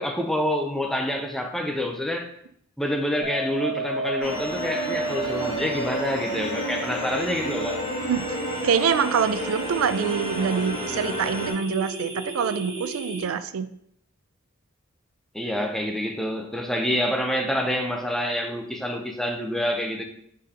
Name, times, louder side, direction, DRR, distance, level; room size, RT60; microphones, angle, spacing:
voice 1, 0.0-2.3 2.8-7.8 15.3-20.0, equal, ahead, 0.5 m, -27 dB
sound 1, 3.2-13.2, right 2 dB, 60° right, 1.1 m, -33 dB
sound 2, 4.2-11.5, equal, 45° left, 1.9 m, -32 dB
voice 2, 8.6-13.7, right 7 dB, 80° right, 0.3 m, -25 dB
4.8 x 3.9 x 2.8 m
head